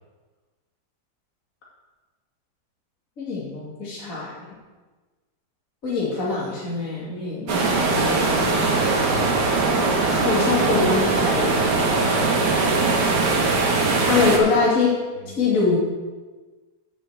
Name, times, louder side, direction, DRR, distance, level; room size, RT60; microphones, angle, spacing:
voice 1, 3.2-4.3 5.8-8.7 10.0-11.7 14.1-14.9 15.4-15.8, left 4 dB, 40° left, -7 dB, 2.6 m, -24 dB
sound 1, 7.5-14.4, right 3 dB, 55° right, 1.9 m, -21 dB
voice 2, 12.2-13.1 13.4-14.3 15.2-15.4, right 2 dB, 60° left, -5 dB, 3.7 m, -39 dB
7.1 x 7.0 x 7.8 m, 1.3 s
omnidirectional pair, 2.3 m